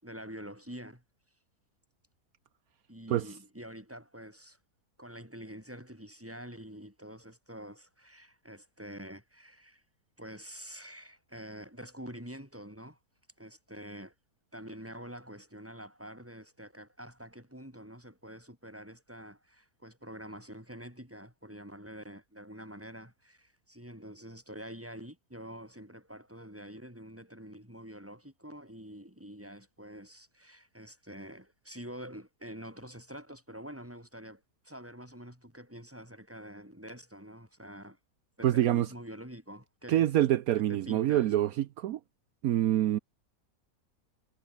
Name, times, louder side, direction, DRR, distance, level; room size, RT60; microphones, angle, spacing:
voice 1, 0.0-1.0 2.9-4.6 5.0-9.8 10.2-13.0 13.4-14.1 14.5-38.0 38.4-40.1 40.5-41.5, equal, 10° right, 6.3 m, -46 dB
voice 2, 38.4-38.9 39.9-42.0 42.4-43.0, right 12 dB, 75° right, 1.1 m, -26 dB
omnidirectional pair, 1.6 m